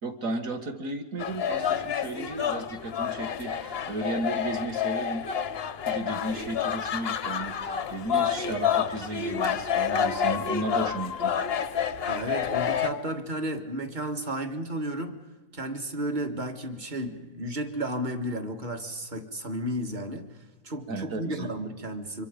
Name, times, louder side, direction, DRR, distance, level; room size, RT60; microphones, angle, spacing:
voice 1, 0.0-5.2 5.8-11.4 20.9-21.5, right 2 dB, 45° right, 5 dB, 1.9 m, -34 dB
sound 1, 1.2-12.9, left 8 dB, 55° left, 0.7 m, -29 dB
voice 2, 12.1-15.2 15.5-22.2, right 1 dB, 25° right, 7 dB, 1.4 m, -33 dB
26.0 x 23.0 x 5.1 m, 1.2 s
omnidirectional pair, 2.1 m